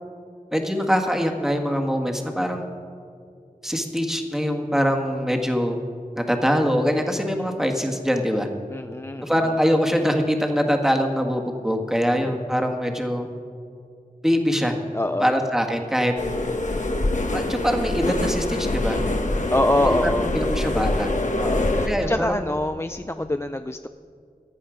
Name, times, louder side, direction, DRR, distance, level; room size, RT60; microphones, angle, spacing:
voice 1, 0.5-2.7 3.6-5.7 6.2-8.5 9.2-13.3 14.2-14.7 15.2-16.1 17.3-19.0 19.8-21.1 21.8-22.4 23.1-23.3, equal, 5° right, 2 dB, 1.7 m, -23 dB
voice 2, 8.7-9.3 14.9-15.3 19.5-20.3 21.4-23.9, left 1 dB, 15° left, 9 dB, 0.3 m, -25 dB
sound 1, 16.2-21.9, left 2 dB, 55° left, 1.2 m, -24 dB
15.0 x 10.5 x 5.1 m, 2.3 s
wide cardioid pair, 40°, 15 cm